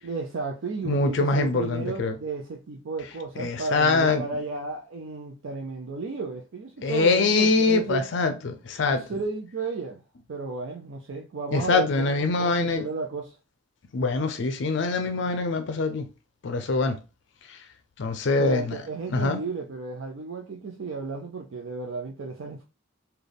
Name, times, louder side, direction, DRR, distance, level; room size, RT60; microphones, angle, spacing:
voice 1, 0.0-8.1 8.9-10.0 10.3-13.4 18.2-22.6, right 4 dB, 75° right, 0.5 m, -33 dB
voice 2, 0.8-2.1 3.4-4.2 6.8-9.0 11.5-12.8 13.9-16.1 16.4-17.0 18.0-18.6 19.1-19.4, left 3 dB, 60° left, 0.4 m, -24 dB
3.4 x 2.3 x 3.9 m
head